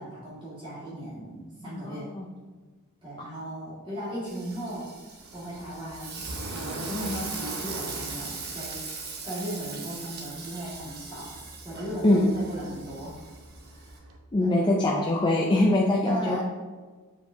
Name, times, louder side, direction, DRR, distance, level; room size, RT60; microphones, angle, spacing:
voice 1, 0.0-2.1 3.0-4.9 5.3-6.2 6.5-11.3 11.6-13.2 13.7-13.9 14.4-14.7 16.0-16.4, right 1 dB, 25° right, -8 dB, 1.9 m, -37 dB
voice 2, 1.6-2.3 12.0-12.3 14.3-16.4, left 1 dB, 20° left, -1 dB, 0.5 m, -23 dB
Frying (food), 4.3-14.0, right 4 dB, 45° right, 1.1 m, -40 dB
sound 1, 5.2-14.2, right 1 dB, 65° right, 0.8 m, -43 dB
7.9 x 4.8 x 2.7 m, 1.4 s
head